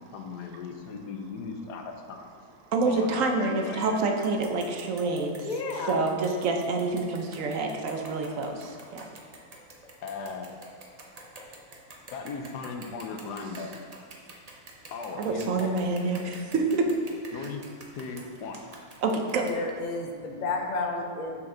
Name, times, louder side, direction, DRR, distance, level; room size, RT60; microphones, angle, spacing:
voice 1, 0.1-2.4 2.9-3.2 3.4-4.0 10.0-10.5 12.1-13.8 14.9-15.8 17.3-17.6 17.9-18.6, left 4 dB, 75° left, 4 dB, 1.3 m, -37 dB
voice 2, 2.7-5.5 5.9-8.5 8.9-9.1 15.2-16.9 17.3-17.5 19.0-19.5, right 3 dB, 60° right, 3 dB, 1.0 m, -27 dB
sound 1, 3.8-3.9 4.2-20.1, right 2 dB, 40° right, 0.5 m, -48 dB
voice 3, 5.4-6.0 19.4-21.5, left 3 dB, 60° left, 2 dB, 0.4 m, -31 dB
6.3 x 6.1 x 3.8 m, 2.2 s
omnidirectional pair, 1.8 m